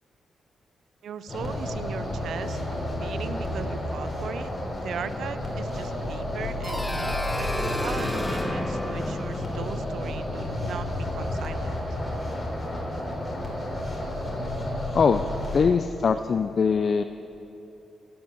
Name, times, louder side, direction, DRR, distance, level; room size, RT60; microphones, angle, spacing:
voice 1, 1.0-11.8, right 7 dB, 75° right, 13 dB, 0.6 m, -38 dB
sound 1, 1.3-15.7, left 1 dB, 40° left, 3.2 m, -31 dB
sound 2, 6.6-11.3, left 1 dB, 15° left, 1.2 m, -32 dB
voice 2, 15.5-17.0, left 5 dB, 55° left, 9 dB, 0.4 m, -22 dB
16.0 x 7.0 x 7.8 m, 2.9 s
cardioid pair, 65°, 0 cm